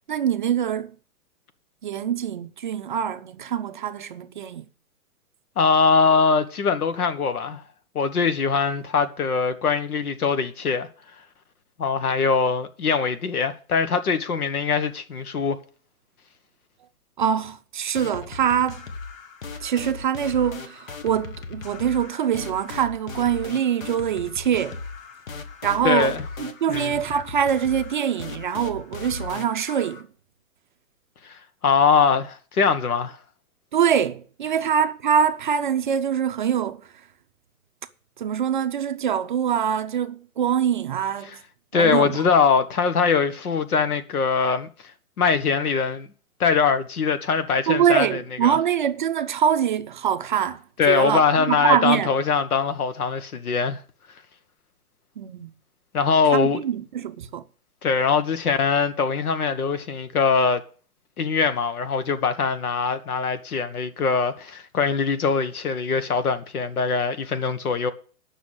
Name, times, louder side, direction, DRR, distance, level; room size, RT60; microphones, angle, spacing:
voice 1, 0.1-0.9 1.8-4.7 17.2-18.8 19.6-24.8 25.6-30.0 33.7-36.8 38.2-41.4 41.7-42.3 47.7-52.1 55.2-55.5 56.3-57.4, right 8 dB, 35° right, 0.5 m, -24 dB
voice 2, 5.6-7.6 7.9-10.9 11.8-15.6 25.8-26.2 26.7-27.0 31.2-33.2 41.2-41.4 41.7-44.7 45.2-46.1 46.4-48.6 50.8-53.8 55.9-56.6 57.8-60.6 61.2-67.9, left 5 dB, 80° left, 1.6 m, -22 dB
sound 1, 17.9-30.0, left 4 dB, 60° left, 1.8 m, -38 dB
9.5 x 6.2 x 8.0 m
hypercardioid pair, 155°, 44 cm